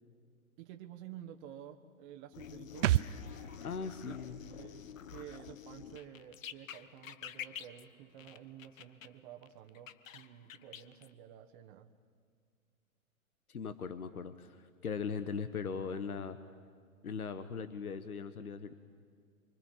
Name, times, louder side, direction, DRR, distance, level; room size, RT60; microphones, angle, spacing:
voice 1, 0.6-3.1 3.5-3.7 4.0-4.2 4.6-11.9, right 10 dB, 35° right, 4 dB, 1.3 m, -51 dB
sound 1, 2.3-9.1 9.4-11.1, left 9 dB, 65° left, 1.2 m, -48 dB
sound 2, 2.8-6.4 6.6-6.7, right 13 dB, 60° right, 0.6 m, -36 dB
voice 2, 3.6-4.4 13.5-16.4 17.0-18.7, left 6 dB, 85° left, 11 dB, 1.3 m, -39 dB
26.0 x 24.5 x 7.4 m, 2.1 s
hypercardioid pair, 125°, 43 cm